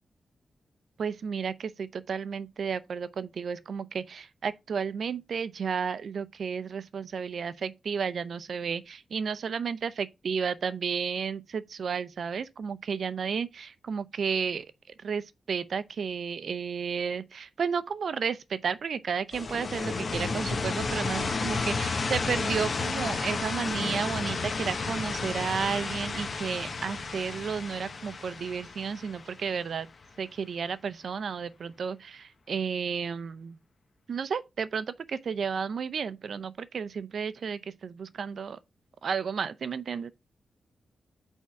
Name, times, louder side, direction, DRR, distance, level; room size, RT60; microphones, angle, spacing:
voice 1, 1.0-14.7 15.0-29.9 30.2-33.6 34.1-38.6 39.0-40.1, right 6 dB, 60° right, 0.5 m, -32 dB
sound 1, 19.3-30.0, left 4 dB, 40° left, 0.8 m, -32 dB
8.5 x 3.6 x 4.7 m
wide cardioid pair, 150°, 0 cm